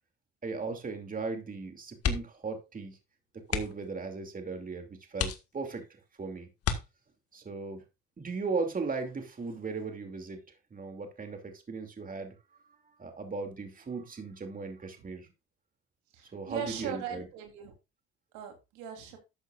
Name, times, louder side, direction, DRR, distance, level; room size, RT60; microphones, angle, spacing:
voice 1, 0.4-3.0 3.5-6.5 7.3-7.8 8.2-12.6 13.0-15.3 16.3-17.3, right 4 dB, 30° right, 5 dB, 2.7 m, -37 dB
sound 1, 1.9-2.5 2.8-3.0 3.4-3.9 4.5-4.6 5.1-5.9 6.6-7.4 8.9-9.3 9.6-9.7, left 7 dB, 55° left, 1.8 m, -33 dB
voice 2, 16.1-17.7 18.3-19.2, right 8 dB, 85° right, 3 dB, 3.3 m, -39 dB
12.5 x 8.1 x 2.5 m, 0.25 s
supercardioid pair, 85°, 29 cm